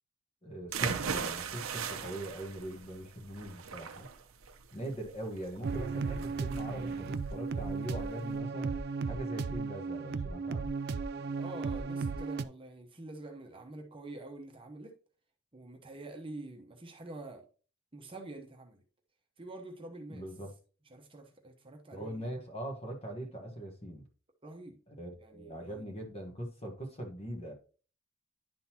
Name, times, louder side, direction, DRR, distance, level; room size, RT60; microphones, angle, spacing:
voice 1, 0.4-4.1 4.7-8.8 9.1-10.8 20.1-20.5 21.9-24.0 24.9-27.5, right 1 dB, 30° left, 1.3 m, -41 dB
sound 1, 0.7-8.4, right 6 dB, 75° right, 0.7 m, -39 dB
sound 2, 5.6-12.5, right 4 dB, 50° right, 0.4 m, -35 dB
voice 2, 11.4-15.0 15.5-17.4 17.9-18.8 19.4-20.3 20.9-22.3 24.4-24.8 25.2-25.9, right 2 dB, 25° right, 0.9 m, -46 dB
10.5 x 3.9 x 2.8 m
head